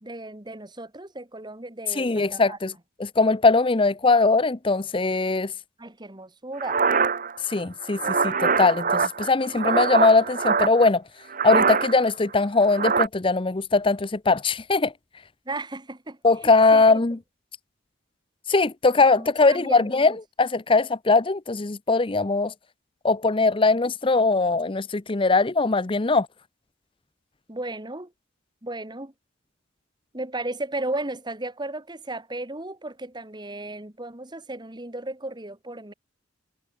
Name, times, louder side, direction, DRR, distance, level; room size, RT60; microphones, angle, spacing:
voice 1, 0.0-2.6 5.8-6.8 15.5-17.1 19.2-20.2 27.5-28.1 28.6-29.1 30.1-35.9, right 2 dB, 20° right, 2.1 m, -35 dB
voice 2, 2.0-2.7 3.0-5.5 7.5-11.0 11.4-14.9 16.2-17.2 18.5-20.1 20.4-22.5 23.0-26.3, left 3 dB, 25° left, 0.7 m, -21 dB
sound 1, 6.6-10.9 11.3-12.1 12.4-13.1, right 5 dB, 45° right, 1.7 m, -24 dB
head